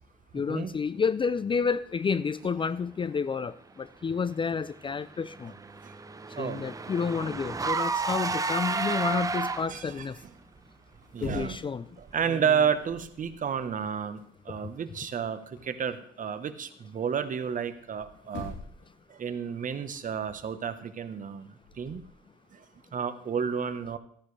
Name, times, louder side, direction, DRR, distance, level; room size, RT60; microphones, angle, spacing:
voice 1, 0.3-5.5 6.4-10.2 11.2-11.8, left 5 dB, 25° left, 16 dB, 0.4 m, -30 dB
sound 1, 3.2-3.5 4.1-4.2 4.5-8.8 10.9-11.9 12.2-12.5 12.8-13.4 13.6-15.8 17.8-17.9 18.2-19.0 19.2-22.1, left 3 dB, 80° left, 3.9 m, -47 dB
Car / Engine, 4.9-9.9, right 4 dB, 20° right, 0.7 m, -31 dB
voice 2, 9.7-10.3 11.1-11.6 12.0-14.2 14.4-18.5 19.1-22.0 22.5-22.6 22.9-24.0, right 7 dB, 45° right, 11 dB, 1.1 m, -31 dB
14.0 x 10.0 x 3.3 m, 0.62 s
cardioid pair, 95°, 19 cm